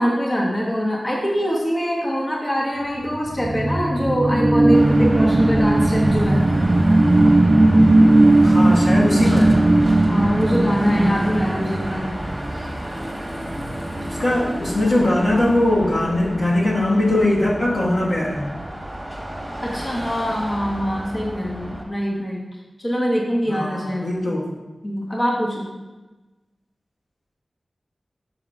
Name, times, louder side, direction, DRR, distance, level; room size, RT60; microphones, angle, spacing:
voice 1, 0.0-6.5 10.0-12.2 12.5-12.7 19.6-22.4 22.8-24.2 24.8-25.7, equal, 25° left, -3 dB, 1.0 m, -23 dB
sound 1, 3.1-12.4, right 2 dB, 40° right, 0.4 m, -17 dB
Car passing by / Traffic noise roadway noise / Engine, 4.7-21.8, right 1 dB, 20° right, 1.3 m, -31 dB
voice 2, 8.4-9.6 14.1-18.5 23.4-24.5, left 1 dB, 75° left, -6 dB, 1.6 m, -20 dB
6.3 x 3.7 x 4.7 m, 1.1 s
wide cardioid pair, 90°, 0 cm